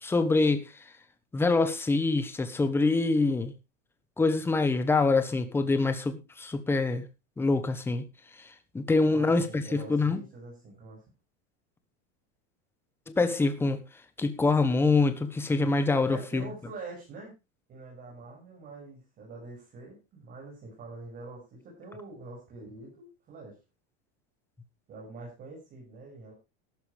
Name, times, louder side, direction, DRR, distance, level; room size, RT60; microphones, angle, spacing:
voice 1, 0.0-0.6 1.3-3.5 4.2-7.0 7.4-8.0 8.7-10.2 13.1-13.8 14.2-16.5, left 3 dB, 5° left, 10 dB, 1.1 m, -25 dB
voice 2, 9.0-11.0 16.1-17.3 17.7-23.6 24.9-26.3, right 3 dB, 25° right, -3 dB, 6.6 m, -45 dB
13.5 x 12.0 x 3.4 m, 0.27 s
supercardioid pair, 170°, 36 cm